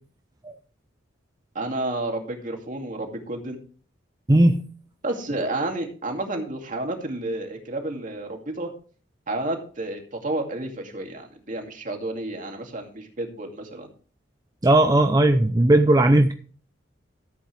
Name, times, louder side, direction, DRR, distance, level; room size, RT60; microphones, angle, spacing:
voice 1, 1.5-3.6 5.0-8.7 9.3-13.9, right 2 dB, 45° right, 3 dB, 2.3 m, -31 dB
voice 2, 14.6-16.3, right 1 dB, 20° right, 6 dB, 0.6 m, -17 dB
14.0 x 8.5 x 3.3 m, 0.41 s
head